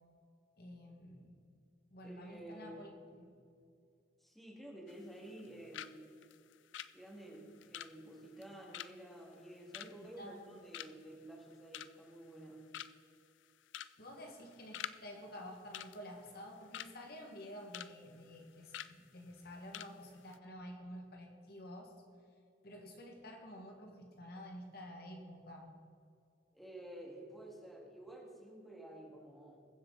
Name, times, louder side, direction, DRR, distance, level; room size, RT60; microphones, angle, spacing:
voice 1, 0.6-1.3 1.9-2.9 3.2-3.4 9.8-10.6 14.0-21.9 22.6-25.7, equal, 55° left, 2 dB, 1.8 m, -50 dB
voice 2, 2.0-2.8 4.2-6.0 6.9-12.7 26.5-29.6, right 1 dB, ahead, -2 dB, 2.1 m, -51 dB
sound 1, 4.9-5.5 5.7-6.0 6.2-10.5 10.7-11.1 11.5-12.1 12.4-12.5 12.7-13.1 13.7-14.0 14.2-15.0 15.2-15.4 15.7-16.9 17.3-17.9 18.2-18.4 18.7-18.9 19.4-19.5 19.7-19.9 20.2-20.4, left 11 dB, 90° left, 0.4 m, -46 dB
21.0 x 7.7 x 4.0 m, 2.4 s
head